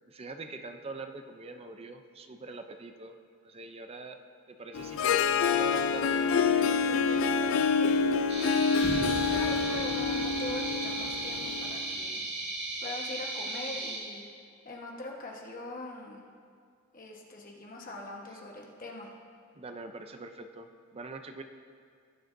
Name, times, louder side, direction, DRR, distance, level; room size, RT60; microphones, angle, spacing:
voice 1, 0.1-3.2 3.4-4.2 4.5-7.5 7.8-8.1 14.2-14.3 19.5-20.7 20.9-21.4, right 3 dB, 25° right, 7 dB, 0.4 m, -44 dB
Harp, 4.7-11.8, left 5 dB, 60° left, 0.3 m, -27 dB
sound 1, 8.3-14.0, right 2 dB, 45° right, 2.3 m, -36 dB
sound 2, 8.8-12.8, left 1 dB, 20° left, 1.4 m, -43 dB
voice 2, 9.2-12.2 12.8-16.2 16.9-19.1, left 2 dB, 40° left, 0 dB, 1.2 m, -42 dB
18.5 x 7.9 x 2.6 m, 2.1 s
head